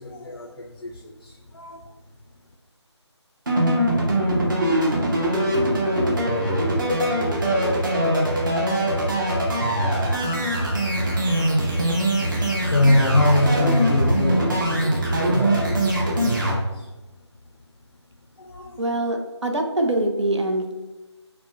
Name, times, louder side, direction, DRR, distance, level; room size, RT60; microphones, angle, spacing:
voice 1, 0.0-1.8 12.7-16.4 16.7-16.9 18.4-18.8, left 1 dB, 65° left, 2 dB, 0.5 m, -24 dB
sound 1, 3.5-16.5, right 1 dB, 45° right, 0.9 m, -22 dB
voice 2, 18.8-20.7, right 1 dB, 75° right, 4 dB, 0.7 m, -24 dB
5.8 x 2.2 x 2.6 m, 1.1 s
figure-of-eight pair, 160°, 15 cm